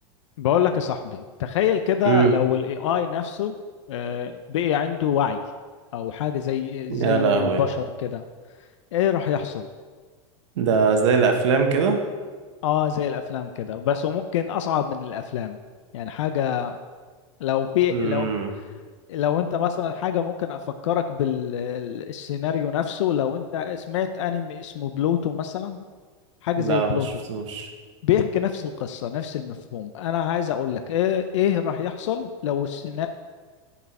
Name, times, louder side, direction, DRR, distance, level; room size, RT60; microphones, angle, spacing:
voice 1, 0.4-3.5 3.9-5.4 5.9-8.2 8.9-9.7 12.6-15.6 15.9-16.7 17.4-18.3 19.1-25.8 26.4-27.1 28.0-33.1, left 9 dB, 80° left, 8 dB, 0.5 m, -25 dB
voice 2, 6.9-7.6 10.6-12.0 17.9-18.5 26.6-27.7, right 5 dB, 80° right, 4 dB, 1.3 m, -21 dB
9.9 x 4.8 x 4.7 m, 1.5 s
supercardioid pair, 180°, 16 cm